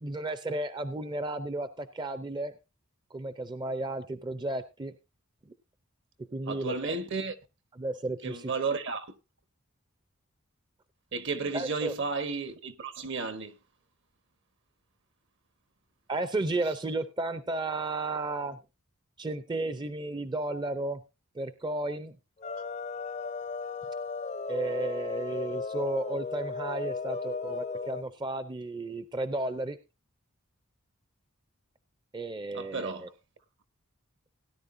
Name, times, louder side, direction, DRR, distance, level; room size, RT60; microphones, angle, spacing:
voice 1, 0.0-2.5 3.1-4.9 6.3-6.7 7.8-8.4 11.5-11.9 16.1-18.6 19.2-21.0 21.4-22.2 24.5-29.8 32.1-33.1, right 2 dB, 20° right, 0.5 m, -33 dB
voice 2, 6.5-7.3 8.2-9.1 11.1-13.6 32.5-33.1, right 4 dB, 60° right, 1.1 m, -33 dB
sound 1, 22.4-28.0, left 4 dB, 35° left, 0.5 m, -35 dB
17.0 x 10.0 x 2.6 m
head